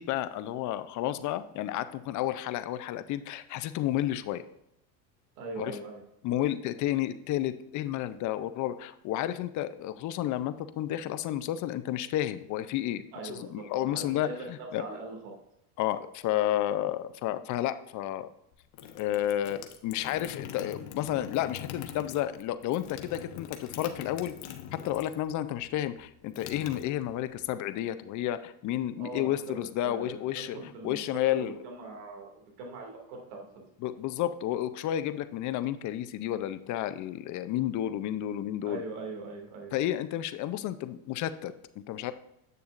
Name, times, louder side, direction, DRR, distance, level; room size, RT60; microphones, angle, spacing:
voice 1, 0.0-4.4 5.6-5.7 6.2-14.8 15.8-18.3 19.0-24.3 24.7-30.6 30.8-31.6 33.8-38.8 39.7-41.5 41.9-42.1, left 12 dB, 40° left, 12 dB, 0.5 m, -31 dB
voice 2, 5.4-6.0 13.1-15.3 29.0-33.5 38.6-39.7, right 3 dB, 70° right, 1 dB, 2.4 m, -41 dB
sound 1, 18.5-25.3 25.6-27.4, left 9 dB, 60° left, 1.0 m, -43 dB
8.1 x 6.7 x 2.5 m, 0.81 s
supercardioid pair, 110°, 46 cm